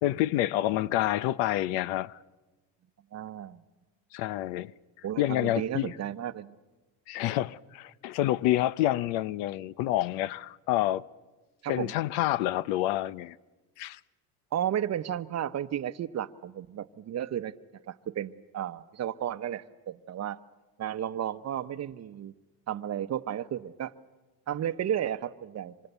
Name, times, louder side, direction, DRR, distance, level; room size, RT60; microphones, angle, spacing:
voice 1, 0.0-2.2 4.1-4.7 5.2-5.9 7.1-11.1 11.7-13.4 13.8-14.0, left 14 dB, 85° left, 0.8 m, -28 dB
voice 2, 3.1-3.6 5.0-6.6 11.6-11.9 14.5-17.5 17.9-20.4 20.8-22.3 22.7-23.9 24.5-25.9, right 10 dB, 35° right, 0.9 m, -33 dB
26.0 x 25.5 x 8.2 m
cardioid pair, 130°, 43 cm